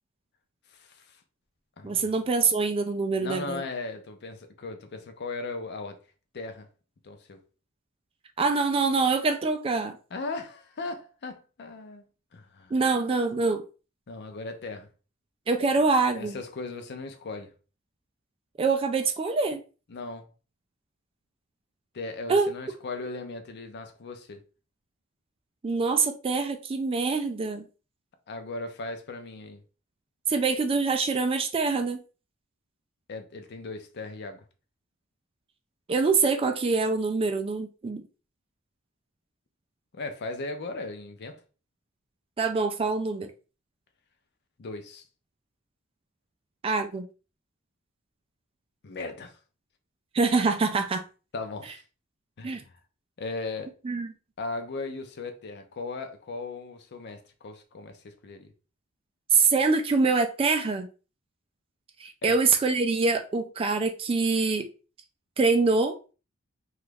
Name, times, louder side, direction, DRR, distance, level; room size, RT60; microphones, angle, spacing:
voice 1, 0.7-1.2 1.8-2.1 3.2-6.0 6.3-6.7 7.0-7.4 10.1-12.7 14.1-14.9 16.1-17.5 19.9-20.3 21.9-24.4 28.3-29.6 33.1-34.5 39.9-41.4 44.6-45.0 48.8-49.4 51.3-51.8 52.4-52.8 53.2-53.7 54.4-58.5 62.2-62.4, left 3 dB, 50° left, 0.5 m, -37 dB
voice 2, 1.8-3.6 8.4-10.0 12.7-13.6 15.5-16.4 18.6-19.6 22.3-22.5 25.6-27.6 30.3-32.0 35.9-38.0 42.4-43.3 46.6-47.1 50.1-51.0 52.4-52.6 53.8-54.1 59.3-60.9 62.0-64.7 65.4-66.1, right 4 dB, 25° right, 0.3 m, -25 dB
3.0 x 2.4 x 3.3 m
head